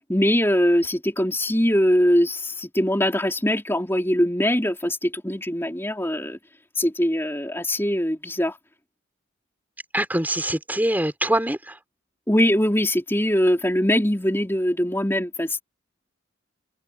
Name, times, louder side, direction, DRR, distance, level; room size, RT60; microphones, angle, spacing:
voice 1, 0.1-6.4 6.8-8.6 12.3-15.6, equal, 10° left, 4.1 m, -22 dB
voice 2, 9.9-11.8, right 1 dB, 10° right, 5.3 m, -24 dB
head